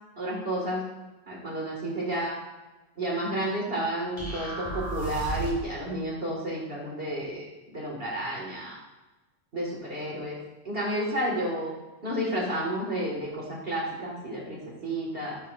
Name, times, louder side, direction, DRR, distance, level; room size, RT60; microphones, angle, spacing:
voice 1, 0.2-0.9 1.3-2.4 3.0-8.8 9.5-10.4 10.6-11.7 12.0-15.4, right 1 dB, 45° right, -3 dB, 2.0 m, -31 dB
sound 1, 4.2-5.8, right 1 dB, 25° left, 3.6 m, -34 dB
15.0 x 7.4 x 2.5 m, 1.1 s
omnidirectional pair, 1.5 m